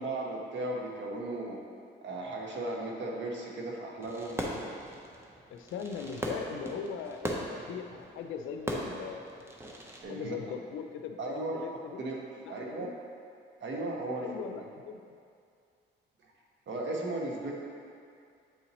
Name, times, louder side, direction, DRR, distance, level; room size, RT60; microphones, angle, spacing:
voice 1, 0.0-1.6 2.0-4.4 10.0-10.3 11.2-11.5 12.0-12.2 12.5-12.9 13.6-14.6 16.7-17.5, right 2 dB, 65° right, -2 dB, 1.2 m, -36 dB
Fireworks, 4.0-10.0, right 1 dB, 10° right, 0.8 m, -39 dB
voice 2, 5.5-9.6 10.1-12.0 12.4-12.9 14.2-15.0, left 6 dB, 80° left, 6 dB, 0.5 m, -40 dB
9.1 x 4.0 x 3.0 m, 2.3 s
cardioid pair, 90°, 20 cm